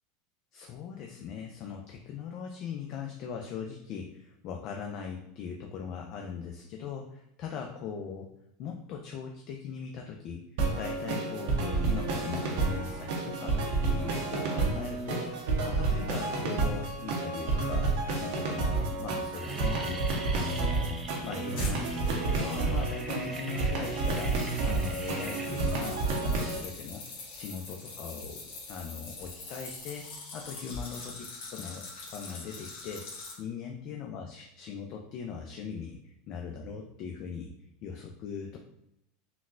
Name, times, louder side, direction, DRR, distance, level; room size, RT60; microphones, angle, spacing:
voice 1, 0.5-8.3 8.6-13.6 13.9-17.9 18.2-20.0 20.3-21.0 21.2-24.3 24.6-27.0 27.3-28.4 28.7-37.5 37.8-38.6, left 6 dB, 50° left, 2 dB, 0.4 m, -40 dB
sound 1, 10.6-26.6, right 3 dB, 70° right, 0.7 m, -30 dB
sound 2, 17.0-17.3 18.0-18.1 18.4-18.7 19.0-27.9, right 2 dB, 15° right, 0.4 m, -43 dB
sound 3, 21.5-23.2 23.7-33.3, left 3 dB, 75° left, 1.2 m, -44 dB
3.9 x 2.1 x 2.5 m, 0.82 s
supercardioid pair, 125°, 0 cm